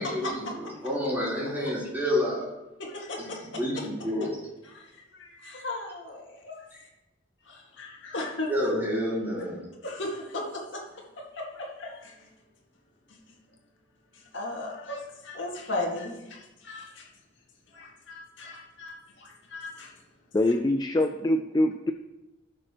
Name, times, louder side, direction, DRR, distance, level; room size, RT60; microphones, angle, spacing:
voice 1, 0.0-2.4 3.2-3.3 3.5-4.3 8.5-9.6, left 1 dB, 10° right, -8 dB, 3.8 m, -29 dB
voice 2, 2.8-3.6 4.6-6.7 7.4-8.5 9.8-12.3 13.1-13.4 14.1-17.1 17.7-20.0, left 2 dB, 70° left, -1 dB, 2.0 m, -37 dB
voice 3, 20.3-21.9, left 1 dB, 20° left, 7 dB, 0.3 m, -24 dB
16.5 x 6.4 x 3.0 m, 1.0 s
head